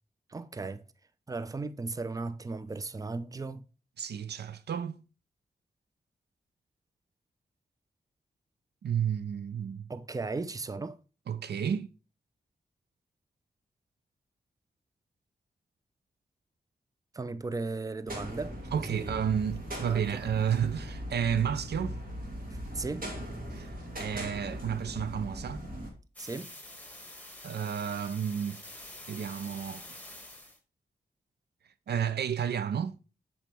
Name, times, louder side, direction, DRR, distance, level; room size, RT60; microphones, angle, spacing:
voice 1, 0.3-0.8 1.3-3.6 9.9-11.0 17.1-19.1 19.9-20.2 22.7-23.1 26.2-26.5, right 3 dB, 20° right, 0.5 m, -36 dB
voice 2, 4.0-5.0 8.8-9.9 11.3-11.9 18.7-22.0 23.5-23.7 24.0-25.6 27.4-28.6 29.1-29.8 31.9-33.0, right 8 dB, 75° right, 0.5 m, -31 dB
sound 1, 18.1-25.9, equal, 55° right, 2.3 m, -39 dB
sound 2, 26.2-30.6, left 1 dB, 10° left, 1.3 m, -47 dB
7.3 x 4.2 x 3.4 m
cardioid pair, 55°, 17 cm